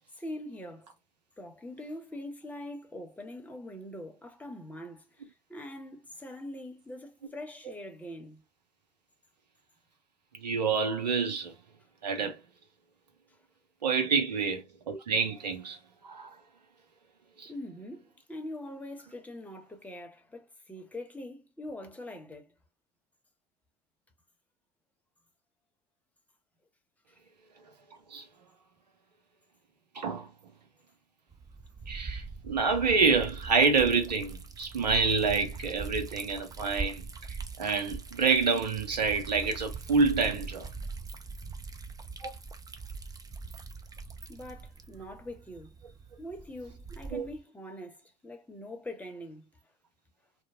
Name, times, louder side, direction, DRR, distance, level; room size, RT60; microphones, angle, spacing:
voice 1, 0.2-0.9 1.4-5.1 5.5-8.4 17.5-22.5 44.3-45.7 46.2-49.5, left 1 dB, 5° left, 0.9 m, -43 dB
voice 2, 10.3-11.5 12.0-12.4 13.8-15.8 16.0-16.3 17.4-17.5 28.1-28.2 29.9-30.3 31.9-37.0 37.3-40.7 42.2-42.3 47.1-47.2, right 4 dB, 90° right, 0.7 m, -27 dB
Liquid, 31.3-47.4, right 4 dB, 15° right, 0.5 m, -42 dB
2.8 x 2.1 x 2.6 m
figure-of-eight pair, 65°, 21 cm